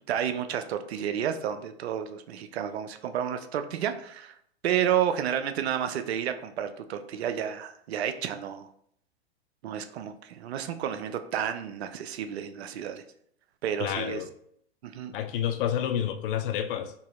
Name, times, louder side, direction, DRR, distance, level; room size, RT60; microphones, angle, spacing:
voice 1, 0.1-4.3 4.6-8.7 9.6-13.0 13.6-14.2 14.8-15.1, right 9 dB, 75° right, 9 dB, 0.5 m, -31 dB
voice 2, 13.8-14.3 15.1-16.9, left 9 dB, 55° left, 9 dB, 0.5 m, -29 dB
4.0 x 2.6 x 2.4 m, 0.69 s
hypercardioid pair, 105°, 32 cm